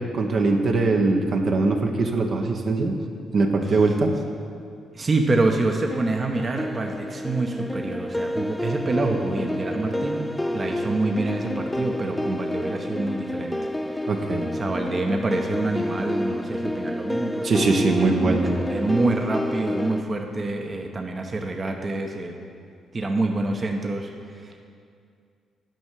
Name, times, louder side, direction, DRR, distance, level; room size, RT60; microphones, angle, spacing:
voice 1, 0.1-3.0 3.3-4.1 14.1-14.4 17.4-18.5, right 3 dB, 55° right, 2 dB, 1.0 m, -21 dB
voice 2, 4.9-13.6 13.9-14.0 14.5-22.3 22.9-24.6, right 2 dB, 35° right, 3 dB, 1.0 m, -27 dB
sound 1, 5.9-20.0, left 1 dB, 10° left, 0.5 m, -29 dB
9.3 x 5.4 x 7.5 m, 2.3 s
hypercardioid pair, 50°, 0 cm